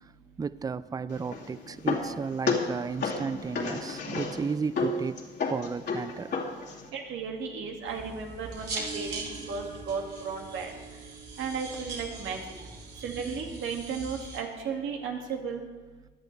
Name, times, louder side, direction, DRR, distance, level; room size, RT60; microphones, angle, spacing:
voice 1, 0.4-5.2 5.5-6.7, right 5 dB, 20° right, 0.3 m, -34 dB
sound 1, 1.1-6.9, left 4 dB, 60° left, 2.5 m, -32 dB
voice 2, 6.9-10.7 11.4-12.4 13.0-15.6, right 5 dB, 80° right, 2.0 m, -34 dB
sound 2, 7.8-14.4, right 3 dB, 60° right, 3.0 m, -40 dB
16.0 x 10.5 x 3.3 m
cardioid pair, 90°, 20 cm